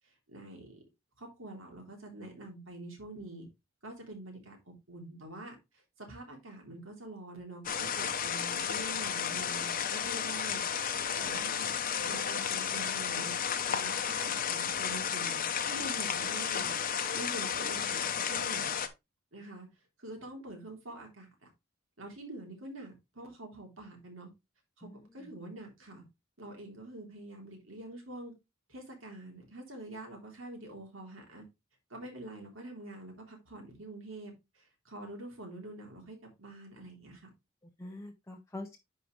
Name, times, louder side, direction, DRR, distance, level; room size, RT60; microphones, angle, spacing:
voice 1, 0.3-0.8 1.2-3.5 3.8-5.6 6.0-13.3 13.7-16.8 17.1-18.7 19.3-19.7 20.0-21.3 22.0-24.3 24.8-26.0 26.4-28.3 28.7-31.5 31.9-37.3, right 1 dB, 70° right, 3.4 m, -46 dB
sound 1, 7.6-18.9, left 7 dB, 45° left, 0.9 m, -33 dB
voice 2, 24.8-25.3 37.6-38.8, left 2 dB, 15° left, 0.7 m, -45 dB
10.5 x 4.8 x 3.3 m
head